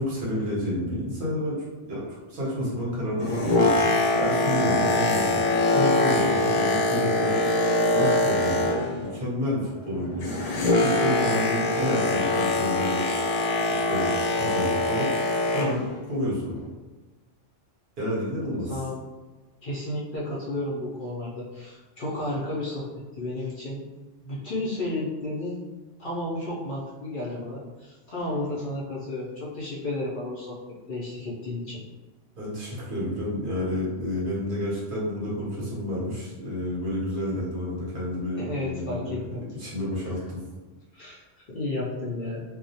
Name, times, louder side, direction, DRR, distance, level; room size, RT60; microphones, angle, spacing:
voice 1, 0.0-5.4 5.7-7.4 7.9-10.4 10.8-13.1 13.7-15.1 15.5-16.6 18.0-18.8 32.3-39.2 39.6-40.4, left 1 dB, 50° right, -7 dB, 0.8 m, -30 dB
Boat Water vehicle, 3.0-9.1 9.4-15.9 16.5-16.6, left 2 dB, 75° left, 0.9 m, -23 dB
voice 2, 18.7-19.1 19.6-22.9 23.1-23.8 24.2-25.6 26.0-30.6 30.9-31.8 38.4-39.4 40.9-42.4, left 1 dB, 60° left, -6 dB, 0.6 m, -32 dB
2.3 x 2.0 x 2.6 m, 1.2 s
omnidirectional pair, 1.3 m